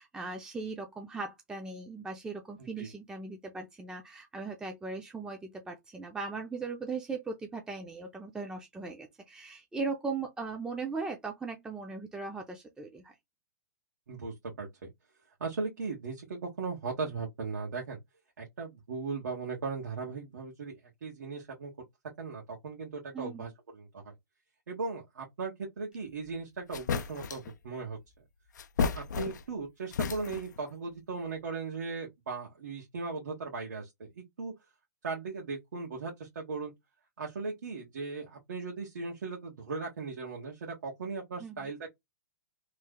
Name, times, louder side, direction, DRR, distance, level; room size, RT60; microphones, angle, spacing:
voice 1, 0.0-13.1 23.1-23.5 41.4-41.7, right 4 dB, 10° right, 0.5 m, -38 dB
voice 2, 14.1-14.9 15.4-18.0 18.4-20.7 21.0-21.7 22.2-24.0 24.7-28.0 28.8-34.5 35.0-36.7 37.2-41.9, right 4 dB, 80° right, 1.3 m, -38 dB
sound 1, 26.3-26.4 26.7-27.5 28.5-29.6 29.9-30.6, left 6 dB, 90° left, 0.4 m, -33 dB
3.1 x 2.0 x 3.5 m
hypercardioid pair, 130°, 9 cm